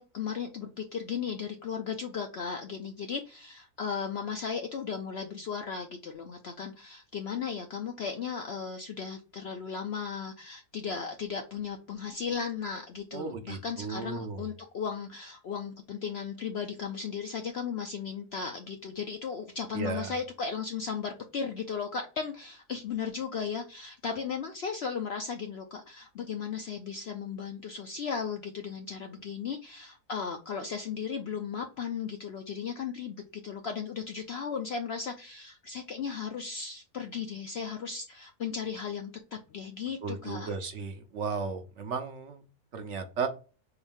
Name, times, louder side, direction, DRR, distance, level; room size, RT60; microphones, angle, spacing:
voice 1, 0.0-40.5, left 6 dB, 65° left, 0.6 m, -36 dB
voice 2, 13.1-14.4 19.7-20.2 40.0-42.4 42.7-43.3, right 5 dB, 60° right, 0.8 m, -35 dB
3.8 x 2.6 x 3.4 m
omnidirectional pair, 1.6 m